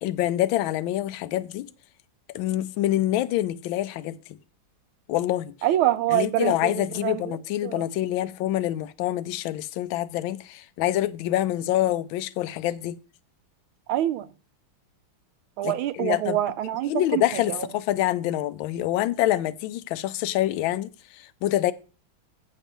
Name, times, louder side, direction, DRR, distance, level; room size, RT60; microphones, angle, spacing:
voice 1, 0.0-1.7 2.3-4.2 5.1-5.5 6.1-13.0 15.6-16.4 16.9-21.7, left 14 dB, 80° left, 1.3 m, -26 dB
voice 2, 5.6-7.4 7.6-7.8 13.9-14.3 15.6-17.7, right 13 dB, 85° right, 1.5 m, -26 dB
7.4 x 4.1 x 6.7 m
omnidirectional pair, 2.2 m